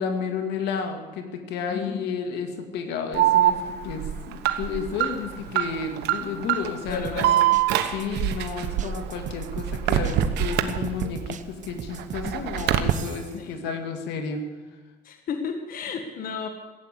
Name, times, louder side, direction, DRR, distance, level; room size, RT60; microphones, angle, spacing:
voice 1, 0.0-7.4 7.9-14.4, left 6 dB, 85° left, 5 dB, 2.2 m, -32 dB
voice 2, 1.7-2.0 6.8-7.5 12.2-12.6 13.4-13.6 15.0-16.5, left 5 dB, 55° left, 6 dB, 1.7 m, -33 dB
Alarm, 3.1-11.3 11.7-12.9, right 12 dB, 85° right, 1.1 m, -24 dB
sound 1, 6.9-13.4, right 8 dB, 45° right, 0.9 m, -38 dB
16.0 x 9.2 x 8.3 m, 1.3 s
cardioid pair, 110°, 17 cm